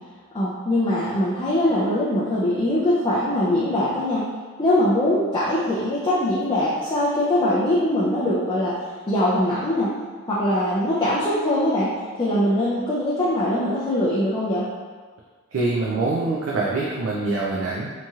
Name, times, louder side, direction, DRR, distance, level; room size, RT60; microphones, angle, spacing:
voice 1, 0.3-4.2 4.6-8.7 9.1-9.9 10.3-11.9 12.2-14.7, left 1 dB, 20° left, -9 dB, 0.4 m, -22 dB
voice 2, 15.5-17.9, right 3 dB, 60° right, -5 dB, 0.4 m, -24 dB
2.9 x 2.8 x 2.3 m, 1.5 s
head